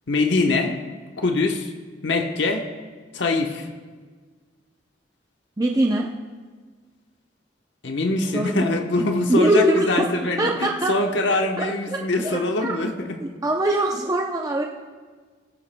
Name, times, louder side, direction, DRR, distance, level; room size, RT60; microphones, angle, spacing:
voice 1, 0.1-0.8 1.2-1.7 2.0-2.7 3.1-3.7 7.8-12.9, left 2 dB, 80° left, 4 dB, 1.0 m, -23 dB
voice 2, 5.6-6.1 8.3-8.7 9.3-10.1 10.4-10.9 11.3-12.7 13.2-14.6, right 1 dB, 20° right, -1 dB, 0.5 m, -22 dB
17.0 x 15.0 x 2.2 m, 1.5 s
head